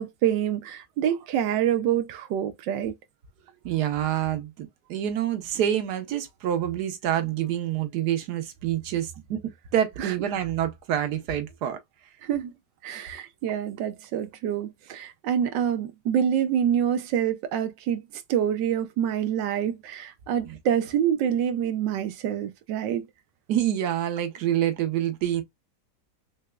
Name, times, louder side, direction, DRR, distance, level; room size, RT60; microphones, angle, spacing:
voice 1, 0.0-2.9 10.0-10.1 12.2-12.5 12.8-18.0 18.3-23.1, right 9 dB, 90° right, 1.3 m, -26 dB
voice 2, 3.6-9.4 9.7-11.8 20.5-20.6 23.5-25.4, right 11 dB, 70° right, 1.4 m, -27 dB
4.0 x 3.3 x 2.3 m
omnidirectional pair, 1.9 m